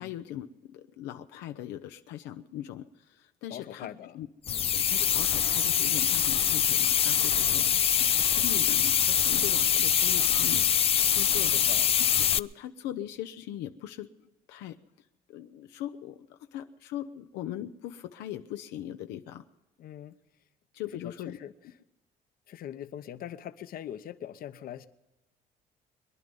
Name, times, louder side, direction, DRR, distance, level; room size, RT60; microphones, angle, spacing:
voice 1, 0.0-3.9 4.1-4.3 4.7-11.5 12.0-14.8 15.3-19.4 20.7-21.4, left 12 dB, 90° left, 8 dB, 0.7 m, -40 dB
voice 2, 3.5-4.2 4.5-4.7 7.4-7.9 11.5-11.9 19.8-20.2 21.0-21.5 22.5-24.9, left 10 dB, 60° left, 11 dB, 0.9 m, -42 dB
sound 1, 4.5-12.4, left 8 dB, 35° left, 0.4 m, -24 dB
23.0 x 11.0 x 5.4 m, 1.1 s
cardioid pair, 110°, 17 cm